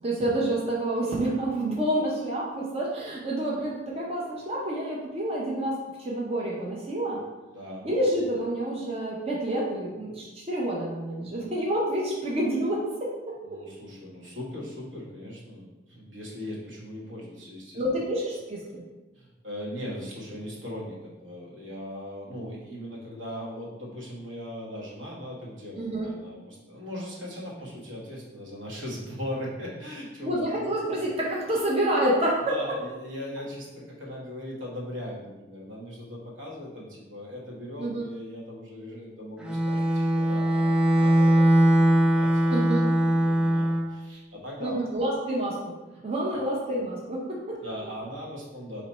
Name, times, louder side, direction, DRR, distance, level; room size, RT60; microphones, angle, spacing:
voice 1, 0.0-7.2 7.8-13.6 17.7-18.8 25.8-26.1 30.2-32.5 37.8-38.0 42.5-42.8 44.6-45.6 46.0-47.6, right 1 dB, 30° right, -4 dB, 0.7 m, -28 dB
voice 2, 7.5-7.9 13.4-17.8 19.1-30.7 32.5-44.8 47.6-48.8, left 1 dB, 80° right, -4 dB, 1.4 m, -39 dB
Bowed string instrument, 39.4-43.9, right 1 dB, 5° right, 0.4 m, -21 dB
4.1 x 3.1 x 4.2 m, 1.1 s
head